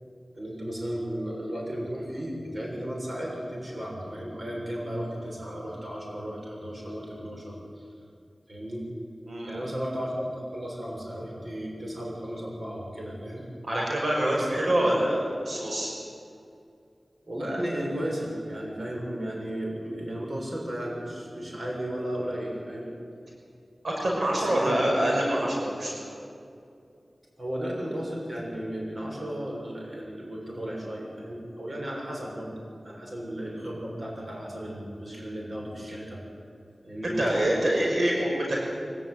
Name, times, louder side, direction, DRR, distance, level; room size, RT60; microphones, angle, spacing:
voice 1, 0.3-7.8 8.5-8.9 9.4-13.5 14.3-14.5 17.3-23.0 24.3-24.9 26.9-27.0 27.4-32.6 32.8-36.2 36.8-37.2, equal, 50° right, -1 dB, 6.9 m, -34 dB
voice 2, 13.6-15.9 23.8-26.1 37.2-38.6, right 1 dB, 75° right, -3 dB, 6.1 m, -25 dB
24.5 x 16.0 x 9.6 m, 2.4 s
wide cardioid pair, 60°, 0 cm